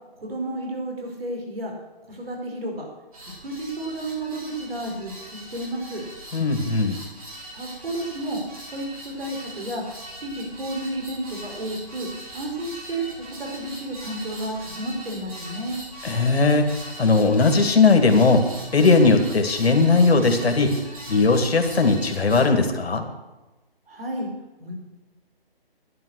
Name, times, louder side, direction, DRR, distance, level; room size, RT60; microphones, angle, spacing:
voice 1, 0.2-1.7 2.1-2.9 3.4-6.0 7.5-8.4 8.7-9.8 10.1-12.1 12.3-15.8 23.9-24.3 24.6-24.8, right 1 dB, 70° right, 1 dB, 5.2 m, -31 dB
sound 1, 3.1-22.4, right 1 dB, 35° right, 3.5 m, -40 dB
voice 2, 6.3-7.0 16.0-18.4 18.7-20.8 21.1-23.0, left 3 dB, 80° left, 5 dB, 2.2 m, -18 dB
11.0 x 11.0 x 6.4 m, 1.1 s
hypercardioid pair, 175°, 31 cm